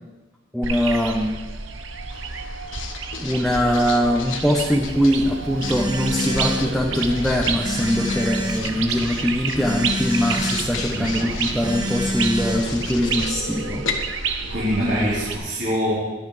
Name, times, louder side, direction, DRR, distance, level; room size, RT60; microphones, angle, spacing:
voice 1, 0.5-1.3 2.3-2.6 3.2-14.5 14.8-15.1, equal, ahead, -2 dB, 0.9 m, -22 dB
sound 1, 0.6-15.4, right 5 dB, 80° right, 1.0 m, -30 dB
Writing, 2.1-15.4, left 5 dB, 85° left, 1.4 m, -36 dB
Telephone, 4.8-13.3, equal, 20° right, 1.3 m, -29 dB
voice 2, 10.9-11.6 14.5-15.9, equal, 55° right, -9 dB, 3.8 m, -25 dB
21.5 x 8.1 x 3.3 m, 1.2 s
head